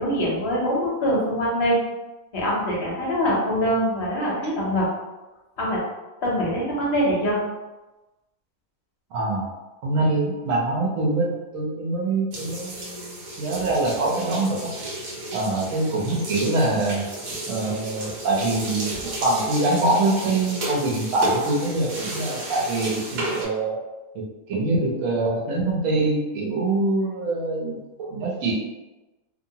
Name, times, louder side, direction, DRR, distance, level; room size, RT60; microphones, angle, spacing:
voice 1, 0.0-1.8 2.3-4.9 5.6-5.8 6.2-7.4, equal, 55° left, -5 dB, 0.8 m, -23 dB
voice 2, 9.1-9.5 9.8-14.7 15.3-17.1 17.5-23.8 24.1-28.5, right 2 dB, 65° right, -2 dB, 1.0 m, -24 dB
sound 1, 12.3-23.5, right 1 dB, 85° right, 1.3 m, -33 dB
2.8 x 2.2 x 2.7 m, 1.1 s
omnidirectional pair, 1.6 m